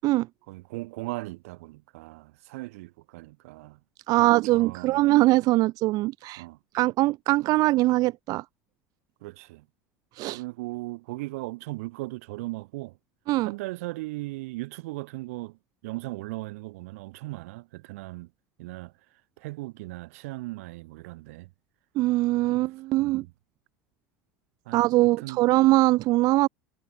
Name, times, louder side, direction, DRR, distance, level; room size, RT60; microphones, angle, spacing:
voice 1, 0.5-3.8 4.2-5.1 6.4-6.6 9.2-9.6 10.3-13.0 13.4-15.6 15.8-18.3 18.6-18.9 19.4-21.5 22.4-22.6 23.0-23.3 24.7-25.4, right 21 dB, 75° right, 3.7 m, -38 dB
voice 2, 4.1-6.4 6.7-8.4 10.1-10.4 13.3-13.5 21.9-23.2 24.7-26.5, right 18 dB, 55° right, 1.1 m, -22 dB
supercardioid pair, 100°, 8 cm